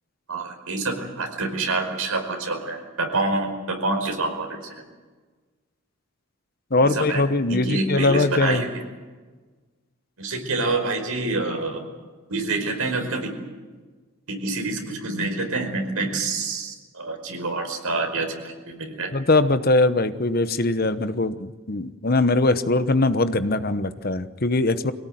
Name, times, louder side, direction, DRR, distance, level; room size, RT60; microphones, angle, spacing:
voice 1, 0.3-4.8 6.8-7.2 7.5-8.8 10.2-11.8 12.3-13.3 14.3-19.1, right 3 dB, 90° right, 4 dB, 5.1 m, -27 dB
voice 2, 6.7-8.6 19.1-24.9, left 2 dB, 45° left, 11 dB, 1.0 m, -21 dB
24.0 x 17.5 x 9.4 m, 1.4 s
head